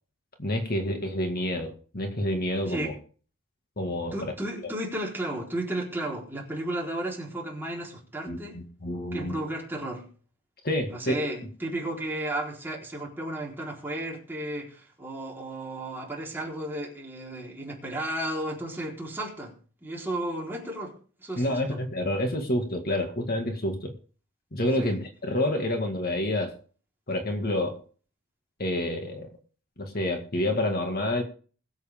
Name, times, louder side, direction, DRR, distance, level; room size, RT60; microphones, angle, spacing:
voice 1, 0.4-2.9 3.8-4.1 4.6-4.7 8.3-9.4 10.6-11.1 21.4-23.9 24.5-26.6 27.1-27.8 28.6-29.3 29.8-31.2, left 1 dB, 45° left, 1.9 m, -28 dB
voice 2, 4.1-8.6 9.1-10.0 10.9-19.5 19.8-21.8 24.8-25.0, right 1 dB, 10° right, 3.9 m, -33 dB
21.0 x 8.0 x 3.6 m
head